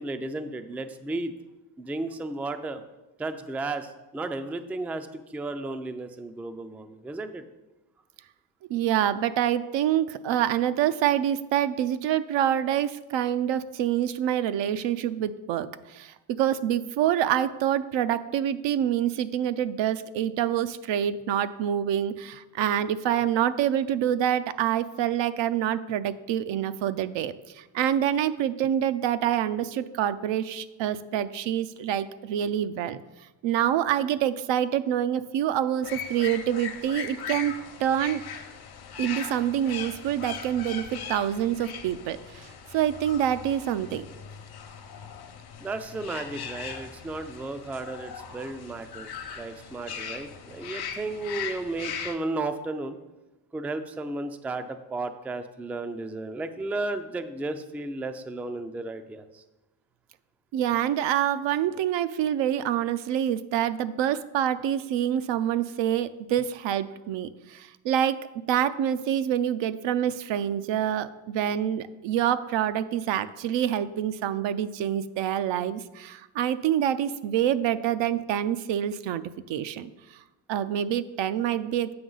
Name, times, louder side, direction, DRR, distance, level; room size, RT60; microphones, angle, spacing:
voice 1, 0.0-1.3 1.8-2.8 3.2-7.4 45.6-49.1 49.4-53.0 53.5-59.4, right 2 dB, 5° right, 9 dB, 0.3 m, -34 dB
voice 2, 8.7-33.0 33.4-37.5 37.8-38.2 39.0-44.1 60.5-79.9 80.5-81.9, right 10 dB, 70° right, 12 dB, 0.5 m, -26 dB
sound 1, 35.8-52.2, left 7 dB, 55° left, 0.9 m, -39 dB
7.8 x 5.3 x 3.9 m, 1.0 s
cardioid pair, 80°, 47 cm